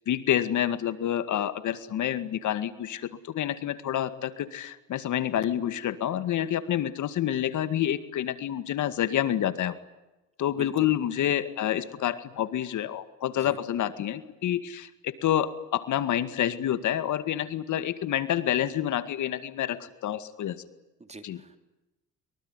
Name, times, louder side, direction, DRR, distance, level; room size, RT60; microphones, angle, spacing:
voice 1, 0.1-9.7 10.4-20.6 21.2-21.4, left 11 dB, 75° left, 12 dB, 2.1 m, -28 dB
voice 2, 10.5-10.9 13.3-13.6 21.0-21.6, right 3 dB, 20° right, 8 dB, 3.3 m, -44 dB
24.0 x 24.0 x 9.7 m, 1.0 s
cardioid pair, 90°, 30 cm